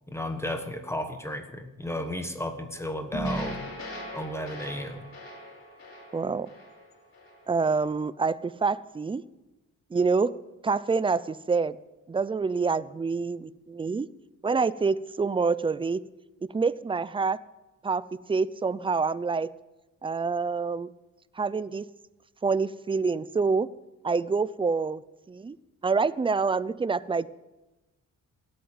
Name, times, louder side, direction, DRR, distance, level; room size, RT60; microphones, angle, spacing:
voice 1, 0.1-3.6 4.1-5.0, left 1 dB, 10° left, 6 dB, 1.4 m, -33 dB
sound 1, 3.1-7.4, equal, 45° left, 5.3 m, -38 dB
voice 2, 6.1-6.5 7.5-9.2 9.9-10.3 10.6-11.8 12.1-14.1 14.4-16.0 16.5-17.4 17.8-19.5 20.0-20.9 21.4-21.9 22.4-23.7 24.0-25.0 25.3-25.6 25.8-27.3, right 4 dB, 15° right, 18 dB, 0.5 m, -26 dB
17.0 x 8.8 x 8.8 m, 1.0 s
cardioid pair, 120°, 30 cm